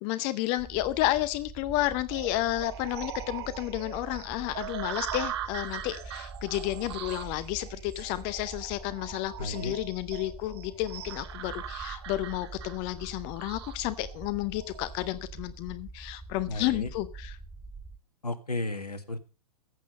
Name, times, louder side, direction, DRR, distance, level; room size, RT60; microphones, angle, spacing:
voice 1, 0.0-17.4, left 16 dB, 25° left, 0.7 m, -31 dB
sound 1, 0.6-18.0, right 3 dB, 5° right, 1.1 m, -45 dB
sound 2, 2.1-15.1, right 11 dB, 40° right, 1.3 m, -41 dB
voice 2, 9.4-9.8 16.5-16.9 18.2-19.2, left 2 dB, 80° left, 1.7 m, -33 dB
14.5 x 8.4 x 5.2 m
figure-of-eight pair, 115°, 20 cm